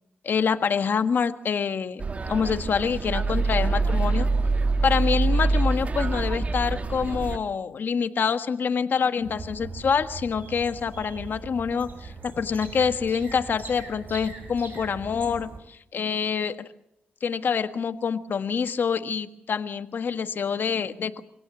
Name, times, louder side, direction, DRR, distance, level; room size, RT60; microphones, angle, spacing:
voice 1, 0.2-2.0 2.3-4.3 4.8-16.7 17.2-21.2, left 6 dB, 60° left, 10 dB, 1.5 m, -26 dB
sound 1, 2.0-7.4, right 3 dB, 35° right, 1.2 m, -25 dB
sound 2, 9.2-15.6, right 4 dB, 60° right, 6.1 m, -41 dB
25.0 x 17.0 x 7.3 m, 0.78 s
cardioid pair, 75°, 4 cm